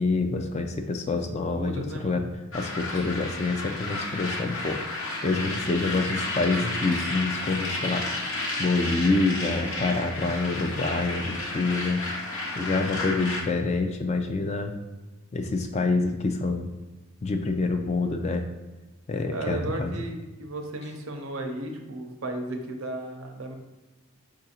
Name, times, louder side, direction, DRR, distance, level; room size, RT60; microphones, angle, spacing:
voice 1, 0.0-2.3 2.5-4.8 5.2-8.1 8.6-12.1 12.6-14.8 15.3-16.7 17.2-18.5 19.1-19.9, left 3 dB, 30° left, 5 dB, 0.3 m, -27 dB
voice 2, 1.5-2.3 19.3-23.5, right 2 dB, 65° right, 4 dB, 0.6 m, -34 dB
sound 1, 2.5-13.4, left 2 dB, 65° left, 0.9 m, -32 dB
4.6 x 2.5 x 4.2 m, 1.1 s
head